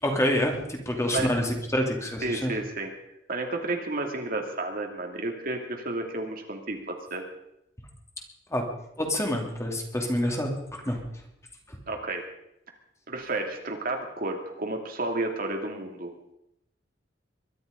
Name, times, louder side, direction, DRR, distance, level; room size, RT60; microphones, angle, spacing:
voice 1, 0.0-2.5 8.5-8.6 9.0-11.0 11.7-11.8, left 1 dB, 15° left, 2 dB, 2.7 m, -27 dB
voice 2, 2.2-2.9 3.3-7.2 11.9-12.2 13.1-16.1, right 2 dB, 50° right, 3 dB, 2.5 m, -31 dB
22.5 x 11.5 x 5.2 m, 0.80 s
head